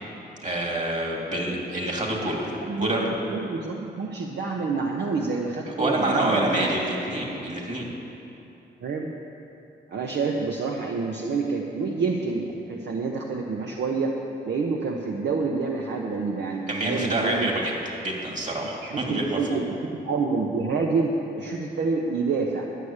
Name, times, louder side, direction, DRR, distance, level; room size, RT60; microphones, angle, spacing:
voice 1, 0.4-2.5 2.8-3.1 5.8-7.9 16.7-17.7 18.0-19.6, right 1 dB, 40° right, -1 dB, 2.7 m, -27 dB
voice 2, 2.7-6.7 8.8-9.1 9.9-14.1 14.5-17.5 18.8-22.7, right 4 dB, 70° right, 0 dB, 0.9 m, -28 dB
11.5 x 6.6 x 8.6 m, 2.9 s
cardioid pair, 70°, 19 cm